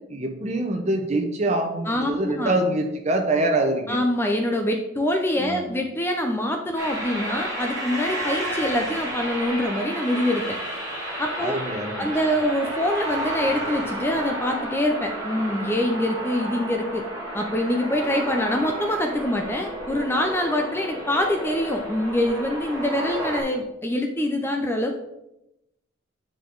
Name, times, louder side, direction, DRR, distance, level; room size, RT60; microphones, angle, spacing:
voice 1, 0.0-4.0 5.4-5.6 11.4-12.1, right 2 dB, 35° right, 4 dB, 0.9 m, -25 dB
voice 2, 1.9-2.5 3.9-10.6 11.2-11.6 12.0-17.0 17.3-25.0, left 1 dB, 10° left, 3 dB, 0.5 m, -25 dB
sound 1, 6.8-23.4, right 1 dB, 15° right, 2.6 m, -32 dB
9.0 x 4.9 x 3.9 m, 0.88 s
head